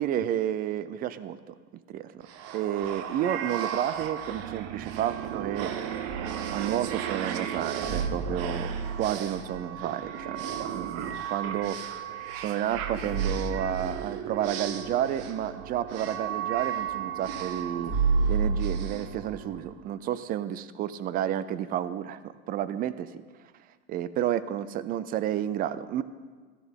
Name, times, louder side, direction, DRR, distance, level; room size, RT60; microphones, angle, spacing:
voice 1, 0.0-1.5 1.9-2.3 2.5-5.7 6.5-10.4 10.7-12.1 12.3-17.9 18.3-23.2 23.9-26.0, right 11 dB, 25° right, 15 dB, 0.4 m, -31 dB
sound 1, 2.2-19.9, right 9 dB, 45° right, 0.9 m, -36 dB
sound 2, 6.1-7.0 7.8-11.8 12.3-12.4 12.6-19.5, right 4 dB, ahead, 3.5 m, -32 dB
13.0 x 11.0 x 3.6 m, 1.5 s
hypercardioid pair, 115°, 35 cm